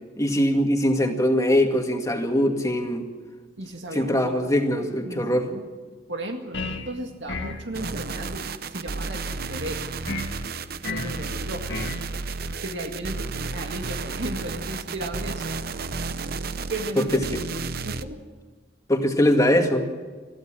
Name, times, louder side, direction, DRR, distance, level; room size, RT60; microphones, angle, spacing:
voice 1, 0.2-3.0 3.9-5.5 17.0-17.1 18.9-19.9, left 1 dB, 20° left, 3 dB, 2.1 m, -22 dB
voice 2, 3.6-4.4 5.1-5.6 6.1-9.9 10.9-11.8 12.6-15.6 16.7-17.4 17.8-18.2, right 1 dB, 70° right, 3 dB, 2.1 m, -35 dB
sound 1, 6.5-6.9 7.3-7.6 10.1-10.3 10.8-11.2 11.7-12.0, left 3 dB, 75° left, 2.3 m, -31 dB
sound 2, 7.7-18.0, right 4 dB, 55° right, 0.8 m, -32 dB
22.0 x 15.5 x 7.7 m, 1.4 s
head